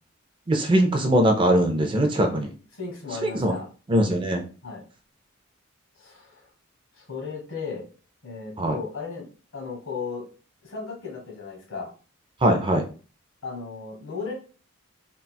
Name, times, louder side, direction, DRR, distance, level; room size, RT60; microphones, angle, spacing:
voice 1, 0.5-2.5 3.2-3.5 3.9-4.4 8.6-8.8 12.4-12.8, right 1 dB, 25° right, 3 dB, 0.4 m, -21 dB
voice 2, 2.7-3.7 4.6-4.8 6.0-6.5 6.9-7.8 8.2-9.3 9.5-10.3 10.6-11.9 13.4-14.3, left 5 dB, 80° left, -2 dB, 1.4 m, -35 dB
4.0 x 2.2 x 2.2 m, 0.37 s
head